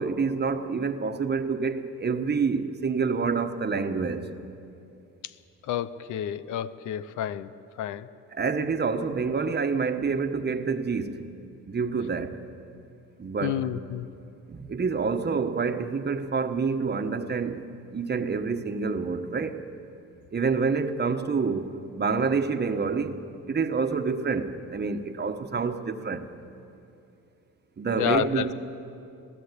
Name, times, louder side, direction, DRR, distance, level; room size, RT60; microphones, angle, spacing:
voice 1, 0.0-4.3 8.3-11.2 11.7-12.4 13.2-13.7 14.5-17.7 17.9-19.6 20.3-23.2 23.5-26.3 27.8-28.5, right 5 dB, 35° right, 1.3 m, -27 dB
voice 2, 5.7-7.5 7.8-8.1 13.4-14.1 28.0-28.4, left 11 dB, 80° left, 0.8 m, -29 dB
22.0 x 15.0 x 8.3 m
cardioid pair, 90°, 30 cm